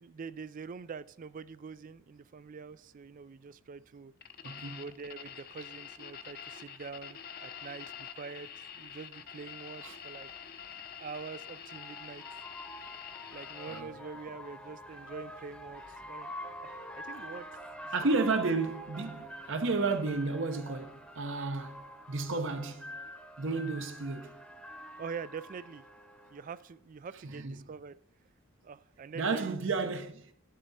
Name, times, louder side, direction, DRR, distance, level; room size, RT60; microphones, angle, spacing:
voice 1, 0.0-4.1 4.7-10.3 11.0-12.2 13.3-16.3 16.6-17.6 17.8-18.2 19.9-20.0 25.0-25.8 26.3-28.0 28.6-29.6, right 5 dB, 40° right, 0.3 m, -45 dB
sound 1, 4.2-13.8, left 8 dB, 45° left, 0.7 m, -46 dB
voice 2, 4.4-4.9 9.8-10.0 13.7-13.9 17.9-22.9 23.4-24.4 27.3-27.5 29.1-30.3, right 3 dB, 60° right, 0.9 m, -32 dB
sound 2, 11.1-26.7, equal, 5° left, 0.9 m, -46 dB
11.5 x 7.6 x 4.1 m
head